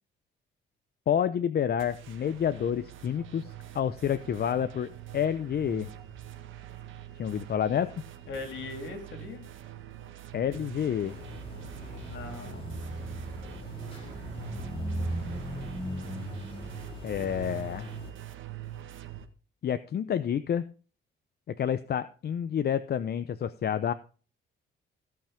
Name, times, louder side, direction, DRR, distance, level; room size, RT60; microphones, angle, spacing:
voice 1, 1.1-5.9 7.2-7.9 10.3-11.2 17.0-17.9 19.6-20.6 21.5-23.9, left 9 dB, 55° left, 12 dB, 0.7 m, -29 dB
sound 1, 1.8-19.3, right 12 dB, 80° right, 1.7 m, -44 dB
voice 2, 8.3-9.5 11.6-12.7, left 3 dB, 70° left, 6 dB, 3.4 m, -41 dB
sound 2, 11.1-18.1, equal, 30° left, 5.1 m, -38 dB
16.5 x 5.8 x 5.1 m, 0.37 s
cardioid pair, 90°, 20 cm